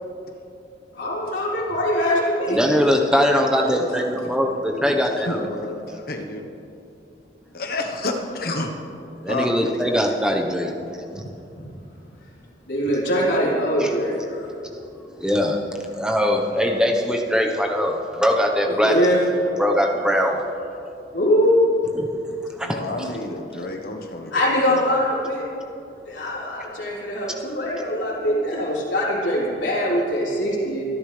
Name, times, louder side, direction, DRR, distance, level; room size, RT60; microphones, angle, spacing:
voice 1, 0.9-2.6 11.5-11.6 12.7-14.5 18.7-19.2 21.1-21.7 24.3-25.4 26.1-30.9, equal, 85° left, -7 dB, 3.8 m, -22 dB
voice 2, 2.5-5.4 9.2-10.7 13.8-13.9 14.7-14.8 15.2-15.6 15.9-19.1 19.6-20.4 21.9-22.1 22.6-22.8, equal, 5° right, 1 dB, 1.1 m, -21 dB
voice 3, 3.2-3.9 5.2-6.5 7.5-8.7 9.3-9.5 22.6-25.0 28.2-28.4 29.9-30.0, left 2 dB, 55° left, 4 dB, 1.2 m, -30 dB
26.0 x 11.0 x 3.4 m, 2.7 s
head